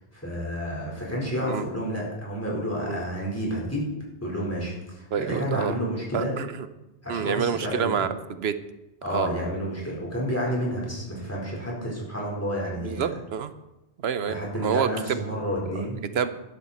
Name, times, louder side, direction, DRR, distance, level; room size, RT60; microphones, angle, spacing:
voice 1, 0.1-3.9 4.2-6.4 7.0-8.1 9.0-13.0 14.3-16.0, equal, 15° left, -4 dB, 4.4 m, -30 dB
voice 2, 5.1-5.7 6.1-6.5 7.1-8.5 9.1-9.3 12.8-13.5 14.0-15.2 16.1-16.3, right 7 dB, 85° right, 11 dB, 1.0 m, -27 dB
12.0 x 12.0 x 4.3 m, 0.99 s
omnidirectional pair, 1.0 m